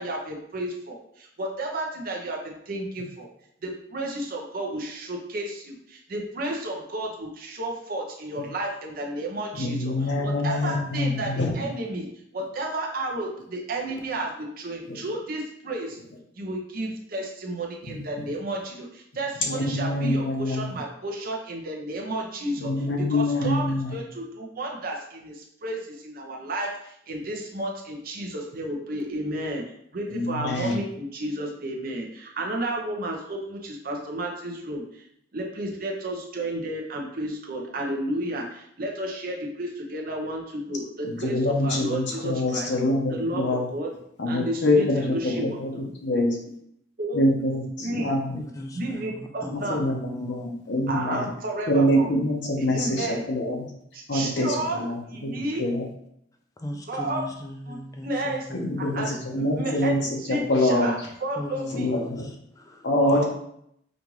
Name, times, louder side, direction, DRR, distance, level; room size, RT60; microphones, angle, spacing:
voice 1, 0.0-3.3 3.6-9.9 10.2-16.0 16.4-22.7 23.0-23.6 23.9-29.6 29.9-35.0 35.3-41.4 41.6-42.7 43.1-43.9 44.3-45.6 47.0-47.2 47.8-48.1 48.8-49.8 50.9-52.1 52.6-53.2 53.9-54.9 55.1-55.6 56.9-57.2 57.7-57.8 58.0-58.4 58.9-60.0 60.3-60.9 61.2-61.9 63.1-63.3, right 1 dB, 50° right, 0 dB, 0.7 m, -32 dB
voice 2, 9.5-11.6 14.9-15.0 17.8-18.0 19.4-20.7 22.6-24.0 30.1-30.8 41.0-43.7 44.2-46.4 47.1-48.4 49.5-51.3 51.7-53.7 54.1-55.9 58.5-60.9 61.7-62.3 62.8-63.3, left 1 dB, 70° left, 0 dB, 0.9 m, -25 dB
voice 3, 48.3-50.5 52.7-53.2 56.6-59.9 61.4-62.9 63.1-63.3, left 1 dB, 20° left, 3 dB, 0.5 m, -38 dB
5.1 x 2.5 x 3.1 m, 0.72 s
head